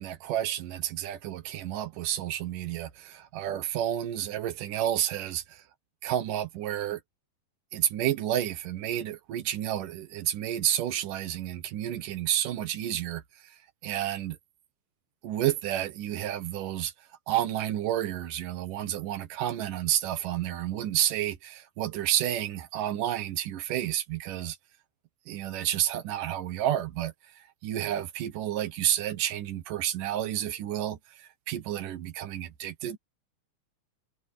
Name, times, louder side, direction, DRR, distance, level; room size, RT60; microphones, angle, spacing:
voice 1, 0.0-5.6 6.0-7.0 7.7-13.2 13.8-14.4 15.2-16.9 17.3-24.6 25.3-27.1 27.6-33.0, right 12 dB, 85° right, 2.9 m, -30 dB
omnidirectional pair, 3.7 m